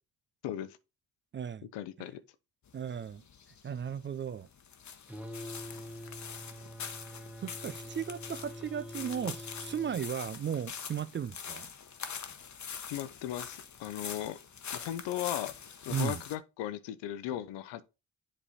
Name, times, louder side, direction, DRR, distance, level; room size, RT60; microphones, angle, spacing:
voice 1, 0.4-0.8 1.7-2.2 12.9-14.4 14.7-15.5 15.9-17.8, left 12 dB, 80° left, 0.7 m, -37 dB
voice 2, 1.3-1.7 2.7-3.2 3.6-4.5 7.4-11.7 15.9-16.2, right 8 dB, 30° right, 0.3 m, -36 dB
sound 1, 2.7-16.4, left 7 dB, 40° left, 0.9 m, -44 dB
sound 2, 5.1-10.0, equal, 5° right, 1.0 m, -45 dB
7.4 x 3.3 x 4.1 m
supercardioid pair, 50°, 42 cm